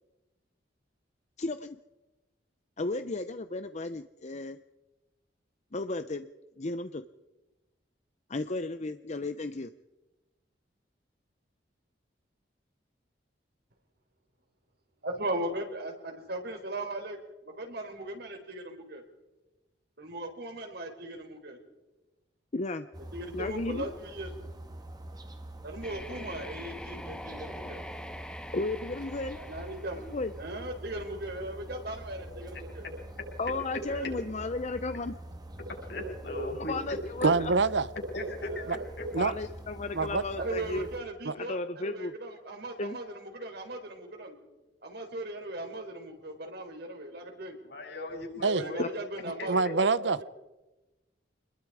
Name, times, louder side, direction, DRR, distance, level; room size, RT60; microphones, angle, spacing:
voice 1, 1.4-1.8 2.8-4.6 5.7-6.3 6.6-7.0 8.3-9.7 22.5-22.9 23.3-23.9 28.5-29.4 30.1-30.3 33.4-35.1 36.4-37.5 39.2-40.9 41.3-42.1 42.8-43.0 48.8-48.9, left 2 dB, 40° left, 10 dB, 0.7 m, -34 dB
voice 2, 15.0-19.0 20.0-21.6 23.1-24.3 25.6-27.9 29.4-32.9 33.6-34.3 38.4-38.9 40.4-44.4 44.8-47.6 48.5-50.2, right 1 dB, 65° right, 4 dB, 4.3 m, -38 dB
sound 1, 22.9-41.0, right 1 dB, 25° right, 2.0 m, -45 dB
sound 2, 25.8-30.7, left 1 dB, 5° left, 1.7 m, -44 dB
voice 3, 35.9-36.8 38.1-39.0 47.7-48.8 49.4-49.5, left 1 dB, 65° left, 2 dB, 7.1 m, -37 dB
voice 4, 37.2-37.9 38.7-38.8 39.1-39.3 39.9-40.2 41.2-41.3 48.4-48.6 49.5-50.2, right 4 dB, 80° right, 17 dB, 0.8 m, -25 dB
26.5 x 21.5 x 4.9 m, 1.1 s
head